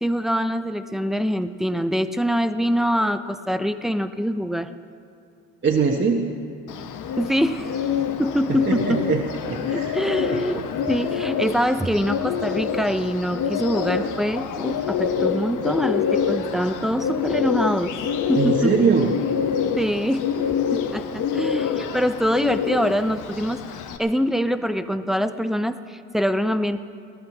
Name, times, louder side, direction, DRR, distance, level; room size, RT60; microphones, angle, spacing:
voice 1, 0.0-4.7 7.2-7.7 8.2-9.0 9.7-17.9 18.3-18.8 19.8-20.3 20.7-26.8, equal, ahead, 10 dB, 0.7 m, -24 dB
voice 2, 5.6-6.3 8.5-10.0 10.3-10.7 18.3-19.2, right 5 dB, 40° right, 0 dB, 1.3 m, -22 dB
Bird, 6.7-24.0, left 7 dB, 90° left, 1.1 m, -26 dB
17.0 x 11.5 x 7.4 m, 2.6 s
cardioid pair, 90°, 30 cm